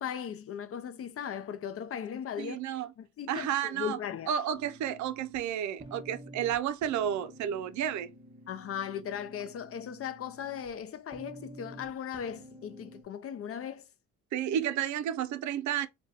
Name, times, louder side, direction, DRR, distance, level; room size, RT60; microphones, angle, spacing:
voice 1, 0.0-2.6 3.0-4.3 8.5-13.9, left 8 dB, 50° left, 0.5 m, -38 dB
voice 2, 2.4-2.9 3.3-4.0 4.3-8.1 14.3-15.9, right 10 dB, 70° right, 0.5 m, -31 dB
sound 1, 4.5-13.0, right 1 dB, 15° right, 1.0 m, -51 dB
2.6 x 2.2 x 3.8 m
cardioid pair, 90°, 30 cm